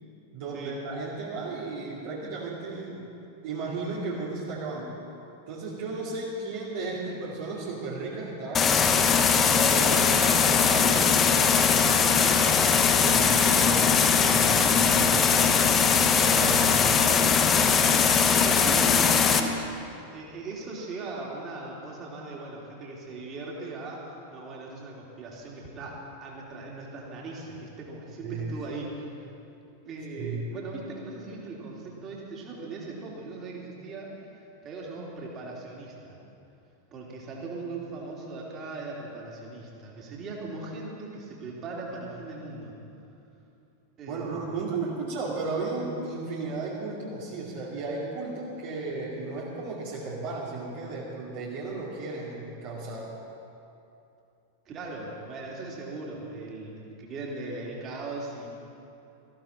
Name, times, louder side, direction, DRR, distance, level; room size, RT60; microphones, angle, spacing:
voice 1, 0.3-3.1 3.4-4.9 5.5-9.2 9.4-12.7 13.0-17.4 28.2-28.5 30.2-30.4 44.1-53.1, right 3 dB, 50° right, -6 dB, 2.4 m, -34 dB
sound 1, 8.5-19.4, left 6 dB, 25° left, 1.0 m, -21 dB
voice 2, 17.7-19.5 20.1-28.9 29.2-29.3 29.8-34.1 34.6-36.2 36.9-42.7 44.0-44.4 54.6-58.5, right 3 dB, 30° right, -3 dB, 3.1 m, -39 dB
19.0 x 14.5 x 4.5 m, 2.7 s
figure-of-eight pair, 90°, 0 cm